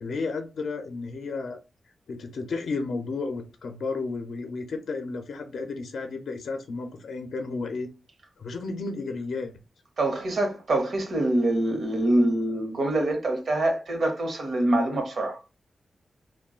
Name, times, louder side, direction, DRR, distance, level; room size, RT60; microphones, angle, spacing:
voice 1, 0.0-1.6 2.1-7.9 8.4-9.5, left 3 dB, 80° left, 0.4 m, -32 dB
voice 2, 10.0-15.4, right 1 dB, 70° right, 0.8 m, -25 dB
2.3 x 2.2 x 3.6 m
cardioid pair, 80°, 0 cm